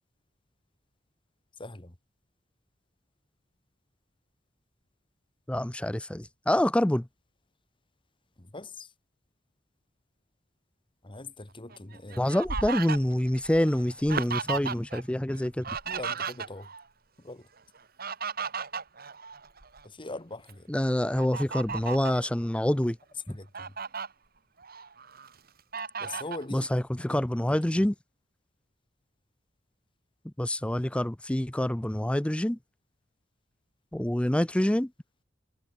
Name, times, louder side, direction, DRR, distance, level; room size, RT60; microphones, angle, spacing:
voice 1, 1.6-1.9 8.4-8.9 11.0-12.3 15.9-16.7 17.2-17.5 19.8-20.7 23.3-23.7 26.0-26.7 27.7-27.8, left 2 dB, 25° left, 1.8 m, -42 dB
voice 2, 5.5-7.1 12.2-15.7 20.7-23.0 23.3-23.4 26.5-27.9 30.2-32.6 33.9-34.9, left 1 dB, 5° left, 0.5 m, -26 dB
Fowl, 11.7-15.0 15.3-16.8 17.7-19.8 20.3-20.5 21.1-22.2 22.8-22.9 23.3-24.1 24.6-25.3 25.7-26.4, right 5 dB, 50° right, 3.1 m, -35 dB
head